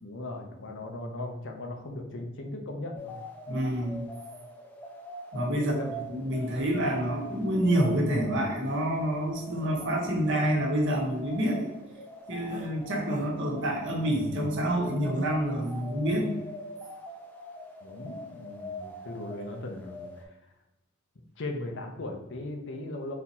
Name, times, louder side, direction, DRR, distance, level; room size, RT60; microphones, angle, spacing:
voice 1, 0.0-3.1 5.6-6.0 17.8-20.3 21.4-23.1, left 2 dB, 60° left, 3 dB, 0.7 m, -38 dB
sound 1, 2.9-20.2, left 1 dB, 10° left, 0.6 m, -43 dB
voice 2, 3.5-4.0 5.3-5.7 6.1-11.7 12.3-16.3, right 1 dB, 60° right, 0 dB, 1.1 m, -28 dB
Series of Grunts Surprised Sounds and Breaths - Male, 8.7-8.8 9.5-9.7 10.2-10.6 12.5-12.7 13.1-13.3 15.1-15.3, right 3 dB, 35° right, 0.3 m, -42 dB
4.1 x 2.8 x 4.2 m, 0.96 s
head